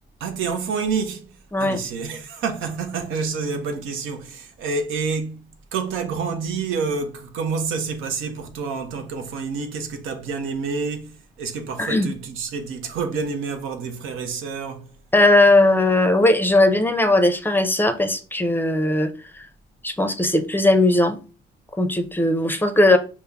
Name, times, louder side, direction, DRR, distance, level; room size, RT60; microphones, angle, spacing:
voice 1, 0.2-5.4 5.7-14.9, right 5 dB, 85° right, 0.7 m, -28 dB
voice 2, 15.1-19.1 19.4-19.5 19.8-21.2 21.8-23.0, left 2 dB, 10° left, 0.5 m, -18 dB
5.4 x 2.1 x 3.4 m
cardioid pair, 90°, 20 cm